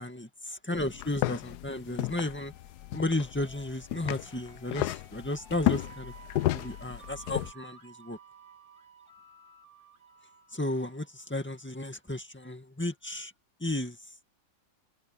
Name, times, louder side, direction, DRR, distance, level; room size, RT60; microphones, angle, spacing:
voice 1, 0.0-2.5 2.9-6.1 6.5-8.2 10.5-13.3 13.6-14.0, left 1 dB, 5° left, 1.9 m, -33 dB
sound 1, 0.8-7.5, left 15 dB, 85° left, 1.1 m, -33 dB
sound 2, 2.2-11.9, right 5 dB, 65° right, 4.4 m, -55 dB
omnidirectional pair, 1.7 m